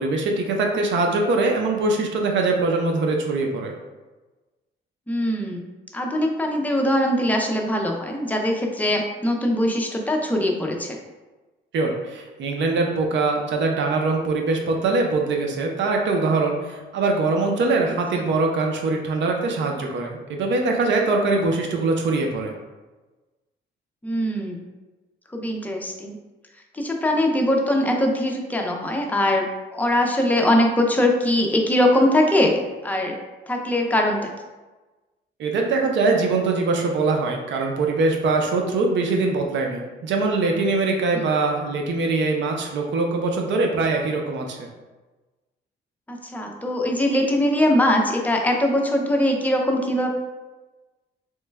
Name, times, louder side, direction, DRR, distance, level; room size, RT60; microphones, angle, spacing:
voice 1, 0.0-3.7 11.7-22.5 35.4-44.7, right 3 dB, 70° right, 2 dB, 0.5 m, -22 dB
voice 2, 5.1-5.7 5.9-11.0 24.0-24.7 25.3-26.2 26.7-29.5 29.7-33.2 33.5-34.3 46.1-50.1, left 1 dB, 10° left, 1 dB, 0.5 m, -21 dB
3.1 x 2.1 x 3.3 m, 1.2 s
cardioid pair, 90°, 20 cm